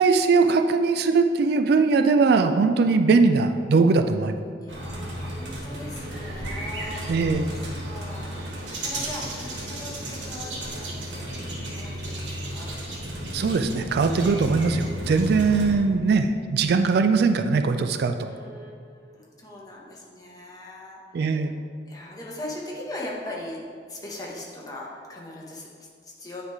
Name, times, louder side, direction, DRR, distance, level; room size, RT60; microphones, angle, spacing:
voice 1, 0.0-4.4 7.1-7.5 13.3-18.2 21.1-21.5, right 4 dB, 60° right, 8 dB, 0.3 m, -20 dB
voice 2, 4.6-7.1 7.5-12.7 18.1-21.5 21.8-23.6 23.9-26.4, left 1 dB, 20° left, -4 dB, 1.1 m, -40 dB
sound 1, 4.7-15.7, right 1 dB, 85° right, 1.3 m, -33 dB
8.7 x 3.3 x 4.7 m, 2.1 s
head